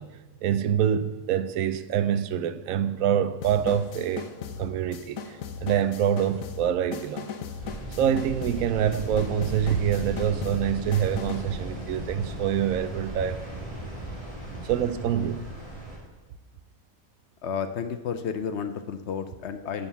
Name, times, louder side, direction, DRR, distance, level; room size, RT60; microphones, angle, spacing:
voice 1, 0.0-4.3 4.6-7.3 8.0-13.4 14.6-15.5, right 9 dB, 85° right, 1.0 m, -26 dB
sound 1, 3.4-11.6, left 7 dB, 85° left, 1.2 m, -39 dB
sound 2, 7.6-16.0, right 1 dB, 25° right, 2.6 m, -36 dB
voice 2, 17.4-19.9, left 7 dB, 65° left, 0.8 m, -32 dB
11.0 x 4.2 x 6.9 m
omnidirectional pair, 1.4 m